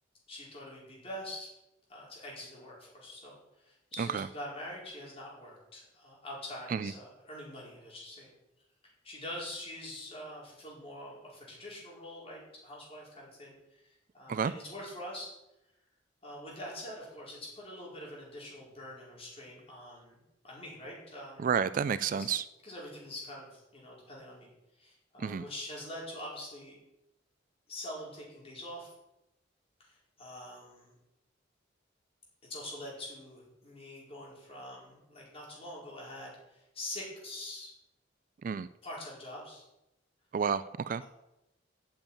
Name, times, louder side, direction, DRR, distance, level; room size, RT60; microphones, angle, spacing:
voice 1, 0.3-1.5 1.9-8.3 9.0-15.3 16.2-21.5 22.1-22.3 22.6-24.5 24.8-26.7 27.7-28.9 29.8-30.9 32.5-37.7 38.8-39.6, left 1 dB, 30° left, -4 dB, 4.8 m, -45 dB
voice 2, 21.4-22.4 25.2-25.4 38.4-38.7 40.3-41.0, right 6 dB, 45° right, 15 dB, 0.3 m, -30 dB
9.0 x 7.1 x 8.9 m, 0.90 s
head